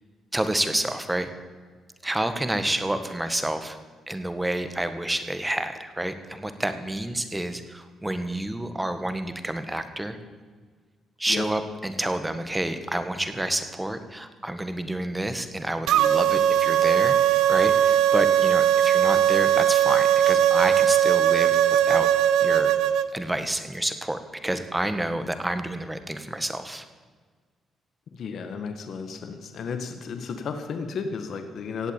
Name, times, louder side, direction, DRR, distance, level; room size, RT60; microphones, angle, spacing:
voice 1, 0.3-1.3 2.0-3.8 4.1-10.2 11.2-22.1 22.4-22.7 23.1-26.8, right 1 dB, 10° right, 9 dB, 1.6 m, -29 dB
sound 1, 15.9-23.1, right 10 dB, 85° right, 0.7 m, -20 dB
voice 2, 28.1-31.9, left 5 dB, 60° left, 7 dB, 1.6 m, -33 dB
16.5 x 8.4 x 8.9 m, 1.5 s
cardioid pair, 90°, 0 cm